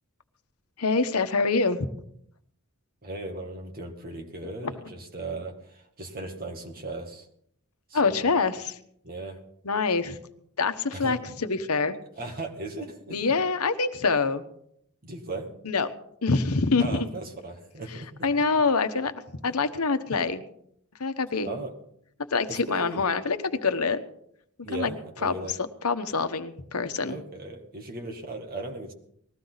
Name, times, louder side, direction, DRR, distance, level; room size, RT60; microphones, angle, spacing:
voice 1, 0.8-1.9 4.6-4.7 7.9-8.8 9.6-10.2 10.6-11.9 13.1-14.4 15.6-15.9 16.2-17.1 18.2-19.1 19.4-20.4 21.0-21.5 22.3-24.0 24.7-24.9 25.2-27.2, left 4 dB, 80° left, 8 dB, 1.1 m, -25 dB
voice 2, 3.0-7.3 7.9-8.3 9.0-9.4 10.9-11.2 12.2-13.2 15.0-15.5 16.8-18.3 19.4-19.6 21.4-21.7 22.5-23.0 24.6-25.6 27.1-28.9, right 2 dB, 40° right, 3 dB, 2.1 m, -37 dB
20.0 x 14.5 x 4.1 m, 0.70 s
head